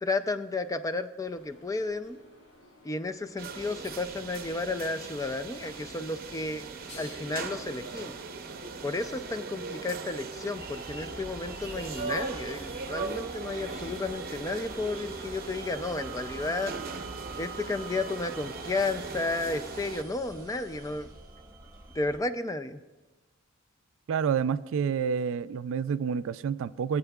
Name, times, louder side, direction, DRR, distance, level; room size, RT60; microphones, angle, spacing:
voice 1, 0.0-2.2 2.8-6.6 7.0-8.1 8.8-16.7 17.4-21.1 21.9-22.8, left 3 dB, 15° left, 0.4 m, -32 dB
sound 1, 1.2-21.0, left 1 dB, 85° left, 3.9 m, -55 dB
sound 2, 3.4-20.0, right 4 dB, 45° right, 0.7 m, -39 dB
sound 3, 10.6-22.2, right 3 dB, 15° right, 1.2 m, -46 dB
voice 2, 24.1-27.0, right 7 dB, 65° right, 0.3 m, -28 dB
19.5 x 8.1 x 2.3 m
head